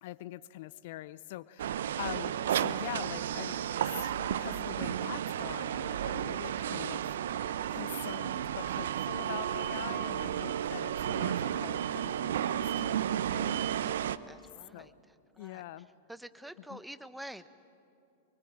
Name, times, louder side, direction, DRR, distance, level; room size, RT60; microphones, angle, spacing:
voice 1, 0.0-13.6 14.7-14.9 15.4-15.9 16.7-16.8, left 15 dB, 55° left, 18 dB, 0.6 m, -44 dB
sound 1, 1.6-14.2, right 10 dB, 65° right, 0.7 m, -33 dB
voice 2, 13.6-14.9 15.3-15.6 16.1-17.5, right 1 dB, 5° right, 13 dB, 1.0 m, -48 dB
24.0 x 24.0 x 9.0 m, 2.6 s
figure-of-eight pair, 95°, 0 cm